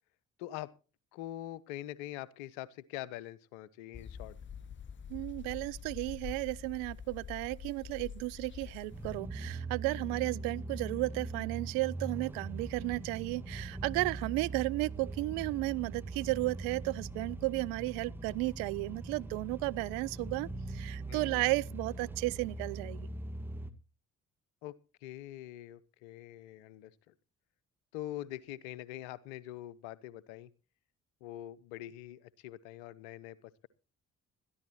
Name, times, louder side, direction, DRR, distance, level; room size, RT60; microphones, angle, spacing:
voice 1, 0.4-0.7 1.1-4.4 21.1-21.4 24.6-27.1 27.9-30.5 31.2-33.7, left 14 dB, 65° left, 1.0 m, -44 dB
sound 1, 3.9-9.2, left 7 dB, 30° left, 0.7 m, -46 dB
voice 2, 5.1-23.1, right 22 dB, 60° right, 0.6 m, -34 dB
sound 2, 8.9-23.7, right 2 dB, 5° right, 1.8 m, -41 dB
21.0 x 13.5 x 3.0 m
figure-of-eight pair, 45°, 38 cm